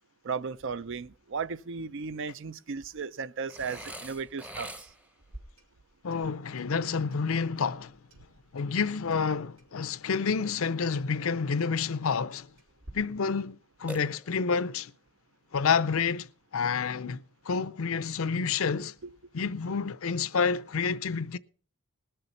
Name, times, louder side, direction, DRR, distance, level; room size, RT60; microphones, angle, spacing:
voice 1, 0.2-4.9 19.0-19.1, right 5 dB, 60° right, 0.5 m, -35 dB
Burping eructation, 3.5-5.2 13.9-14.7, right 1 dB, 5° right, 0.8 m, -43 dB
Clock, 5.2-12.9, right 1 dB, 80° right, 3.5 m, -55 dB
voice 2, 6.0-8.0 8.5-12.5 12.9-14.9 15.5-18.9 19.3-21.4, left 5 dB, 65° left, 0.6 m, -29 dB
19.5 x 6.8 x 5.6 m
head